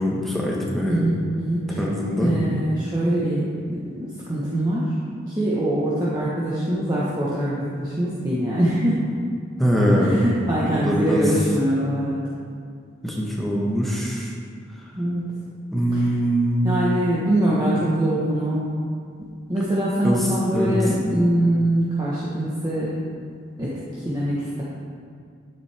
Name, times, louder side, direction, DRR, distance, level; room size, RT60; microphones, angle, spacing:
voice 1, 0.0-1.1 1.8-2.3 9.6-10.2 10.7-11.3 13.0-14.3 15.7-16.7 20.0-20.7, equal, ahead, -4 dB, 1.2 m, -22 dB
voice 2, 0.9-1.8 2.2-4.9 5.4-9.1 9.9-12.2 14.9-15.3 16.6-18.7 19.5-22.9 23.6-23.8 24.0-24.6, right 1 dB, 20° right, -8 dB, 1.2 m, -23 dB
12.0 x 7.5 x 3.5 m, 2.3 s
head